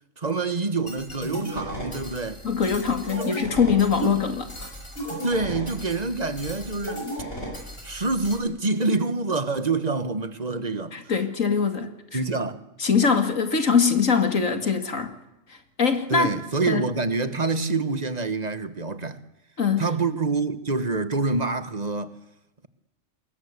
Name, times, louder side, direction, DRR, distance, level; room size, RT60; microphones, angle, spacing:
voice 1, 0.2-2.4 3.1-3.4 4.0-4.2 5.1-7.1 7.8-10.9 12.1-12.6 16.1-19.2 19.8-22.1, right 3 dB, 35° right, 1.4 m, -26 dB
sound 1, 0.9-8.4, equal, 45° left, 7.8 m, -36 dB
voice 2, 2.4-4.7 10.9-12.2 12.8-15.1 15.8-16.3 16.7-16.8 19.6-19.9, left 6 dB, 85° left, 2.7 m, -22 dB
29.0 x 21.5 x 8.3 m
omnidirectional pair, 1.3 m